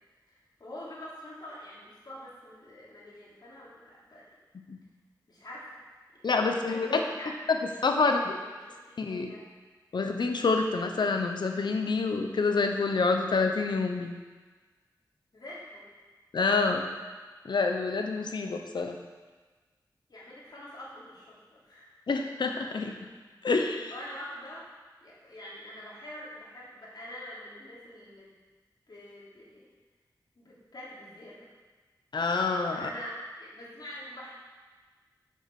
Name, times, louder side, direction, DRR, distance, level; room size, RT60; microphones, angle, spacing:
voice 1, 0.3-4.2 5.3-5.8 6.1-7.3 8.0-9.5 15.3-15.8 20.1-22.0 23.9-24.6 25.0-28.4 28.9-29.6 30.4-31.5 32.7-34.3, left 1 dB, 65° left, -6 dB, 3.2 m, -45 dB
voice 2, 6.2-7.0 7.8-8.4 9.0-9.3 9.9-14.1 16.3-16.9 17.4-19.0 22.1-23.0 23.4-23.9 32.1-32.9, left 4 dB, 80° left, 5 dB, 0.9 m, -27 dB
7.8 x 7.1 x 6.0 m, 1.3 s
wide cardioid pair, 75°, 8 cm